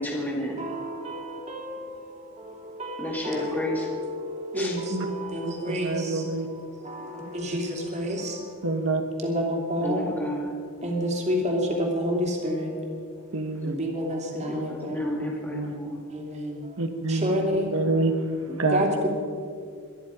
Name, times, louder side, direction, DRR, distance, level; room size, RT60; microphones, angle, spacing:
voice 1, 0.0-0.6 3.0-3.9 4.5-4.8 9.8-10.6 14.5-16.0, equal, 10° left, -2 dB, 2.1 m, -31 dB
voice 2, 0.6-8.5 9.2-10.0 10.8-12.7 13.6-15.5 16.1-16.7 17.1-17.9 18.7-19.1, equal, 30° right, 0 dB, 2.8 m, -30 dB
voice 3, 5.4-6.5 7.5-7.6 8.6-9.0 13.3-13.7 15.5-15.7 16.8-17.3 17.7-18.1 18.6-18.8, right 3 dB, 65° right, 6 dB, 1.3 m, -27 dB
23.5 x 10.5 x 5.1 m, 2.3 s
head